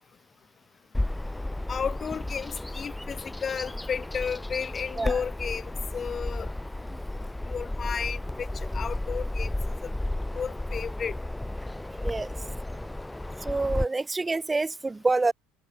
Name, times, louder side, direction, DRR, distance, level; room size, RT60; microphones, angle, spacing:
Bird vocalization bird call bird song, 0.9-13.8, left 1 dB, 10° left, 2.5 m, -33 dB
voice 1, 1.7-6.5 7.5-8.5 8.7-9.5 10.3-11.2, left 6 dB, 35° left, 3.5 m, -33 dB
voice 2, 12.0-12.4 13.4-15.3, right 3 dB, 15° right, 2.0 m, -27 dB
hypercardioid pair, 75°, 0 cm